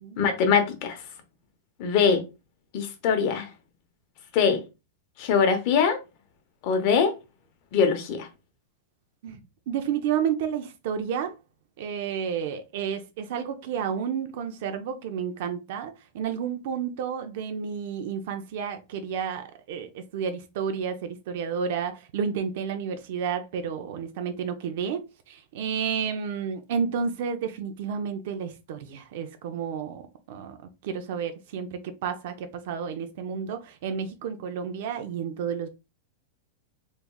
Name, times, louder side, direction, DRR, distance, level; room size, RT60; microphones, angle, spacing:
voice 1, 0.2-1.0 1.8-2.2 2.7-3.5 4.3-4.6 5.2-6.0 6.6-7.1 7.7-8.3, left 6 dB, 35° left, 0.7 m, -22 dB
voice 2, 9.7-11.3 11.8-25.0 25.3-30.0 30.3-30.6 30.8-35.7, right 7 dB, 50° right, 0.4 m, -31 dB
3.4 x 3.1 x 2.3 m
supercardioid pair, 170°, 0 cm